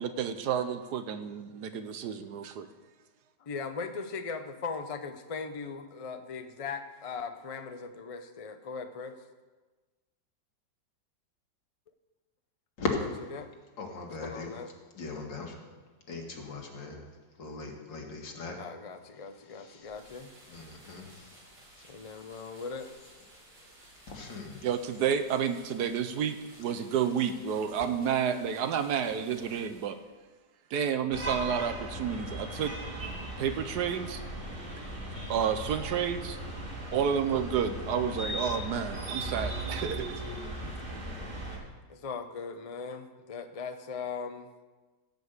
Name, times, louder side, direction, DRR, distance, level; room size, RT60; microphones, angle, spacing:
voice 1, 0.0-2.7 24.6-30.0 30.7-32.8 33.4-34.2 35.3-36.4 36.9-40.2, right 8 dB, 70° right, 10 dB, 1.2 m, -30 dB
voice 2, 3.4-9.2 13.4-13.5 14.2-14.7 18.6-20.3 21.9-22.9 41.9-44.5, left 5 dB, 60° left, 7 dB, 0.3 m, -39 dB
voice 3, 13.8-14.5 14.9-17.1 17.4-18.6 19.5-19.9 20.5-21.9 23.6-23.7 24.1-24.7 29.5-29.6, left 3 dB, 90° left, 1 dB, 2.5 m, -39 dB
sound 1, 19.8-30.2, right 1 dB, 90° right, 4.2 m, -56 dB
sound 2, 31.1-41.6, right 1 dB, 30° right, 2.6 m, -37 dB
16.0 x 5.3 x 8.0 m, 1.3 s
omnidirectional pair, 1.9 m